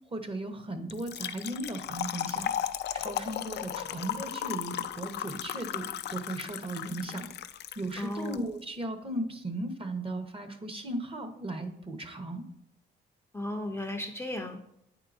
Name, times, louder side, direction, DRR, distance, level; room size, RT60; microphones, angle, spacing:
voice 1, 0.0-2.5 2.9-7.3 7.8-12.4, right 1 dB, 30° right, 7 dB, 0.9 m, -36 dB
Trickle dribble / Fill (with liquid), 0.9-8.4, left 10 dB, 60° left, 0.4 m, -36 dB
voice 2, 8.0-8.4 13.3-14.6, left 1 dB, 10° left, 4 dB, 0.6 m, -35 dB
8.7 x 4.6 x 2.6 m, 0.79 s
cardioid pair, 90°, 20 cm